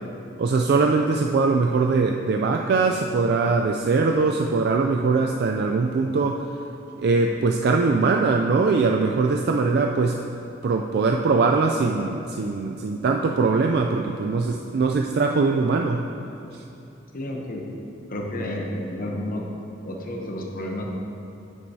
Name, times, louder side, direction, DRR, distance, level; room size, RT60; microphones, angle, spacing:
voice 1, 0.4-6.4 7.0-10.2 10.6-16.1 16.5-16.6, right 4 dB, 55° right, 2 dB, 0.3 m, -21 dB
voice 2, 17.1-17.7 18.1-19.4 19.9-20.8, left 1 dB, 45° left, 0 dB, 0.8 m, -31 dB
8.6 x 7.9 x 2.7 m, 2.7 s
head